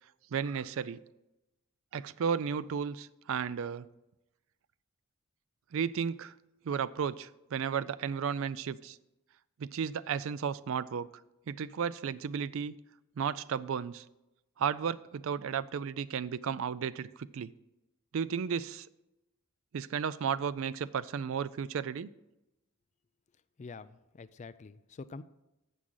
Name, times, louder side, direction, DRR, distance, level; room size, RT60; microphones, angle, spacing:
voice 1, 0.3-1.0 1.9-3.9 5.7-6.3 6.6-9.0 9.6-11.1 11.5-12.7 13.2-14.0 14.6-17.5 18.1-18.9 19.7-22.1, right 7 dB, 65° right, 18 dB, 0.4 m, -33 dB
voice 2, 23.6-25.2, left 4 dB, 35° left, 15 dB, 0.4 m, -46 dB
12.5 x 7.4 x 3.9 m, 0.94 s
head